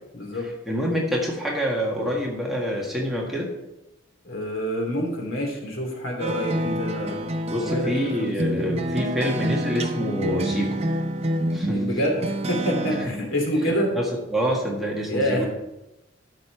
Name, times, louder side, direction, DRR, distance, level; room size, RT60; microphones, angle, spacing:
voice 1, 0.1-0.5 4.2-7.2 7.6-8.7 11.6-13.9 15.1-15.5, equal, 75° left, 0 dB, 2.9 m, -27 dB
voice 2, 0.7-3.5 7.5-10.8 11.5-11.8 13.9-14.0 14.3-15.4, equal, ahead, -3 dB, 1.7 m, -26 dB
sound 1, 6.2-13.1, right 1 dB, 30° right, 0.7 m, -27 dB
12.0 x 6.7 x 4.4 m, 0.94 s
head